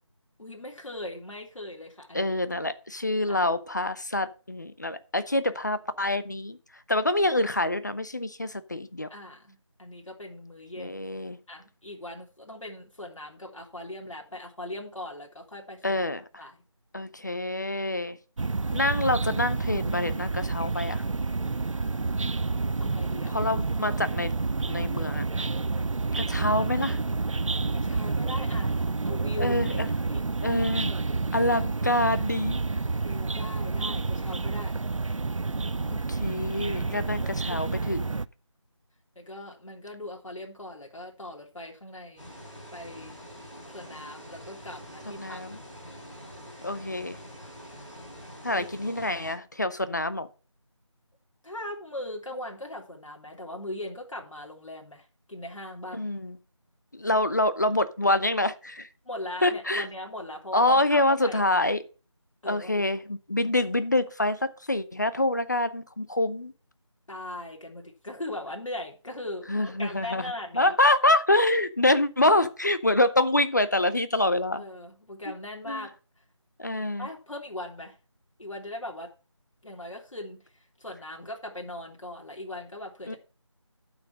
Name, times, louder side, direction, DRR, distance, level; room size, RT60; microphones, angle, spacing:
voice 1, 0.4-2.3 3.3-3.4 9.1-11.0 11.5-16.0 16.4-16.6 22.8-23.4 27.7-28.8 29.0-30.2 33.0-34.7 39.1-42.3 42.7-43.1 43.7-45.4 48.5-48.7 51.4-56.0 59.0-61.4 62.4-62.9 63.4-63.5 67.1-70.8 74.5-75.9 77.0-77.9 78.4-79.1 79.6-83.2, left 1 dB, 85° left, 3.3 m, -40 dB
voice 2, 2.1-6.6 6.9-9.1 10.8-11.4 15.8-16.4 16.9-18.2 18.7-21.0 23.3-24.3 24.7-25.2 26.2-27.0 29.4-29.9 30.4-30.9 31.3-32.6 35.9-38.2 45.2-45.6 46.6-47.2 48.4-50.3 55.9-56.4 56.9-58.9 59.4-59.9 60.5-61.8 62.5-66.5 69.5-70.2 70.5-74.6 75.7-75.9 76.6-77.1 83.1-83.2, left 1 dB, 35° left, 0.8 m, -26 dB
sound 1, 18.4-38.2, right 3 dB, 85° right, 0.6 m, -29 dB
sound 2, 42.2-49.3, equal, 5° left, 3.6 m, -45 dB
12.0 x 6.1 x 4.9 m
figure-of-eight pair, 175°, 16 cm